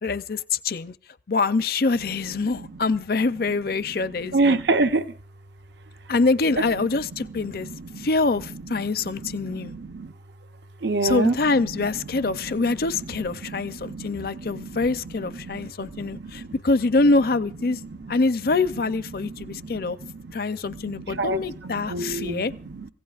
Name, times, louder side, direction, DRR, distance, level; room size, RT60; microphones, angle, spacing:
voice 1, 0.0-0.9 1.3-4.6 6.1-7.7 8.0-9.7 11.0-17.8 18.1-20.0 20.3-22.5, left 3 dB, 55° left, 0.6 m, -25 dB
voice 2, 4.3-5.1 7.6-8.1 9.1-10.1 10.8-11.4 13.5-14.9 15.4-16.5 17.8-17.9 19.2-20.2 20.7-22.9, right 3 dB, 70° right, 0.7 m, -28 dB
24.5 x 16.0 x 2.4 m
head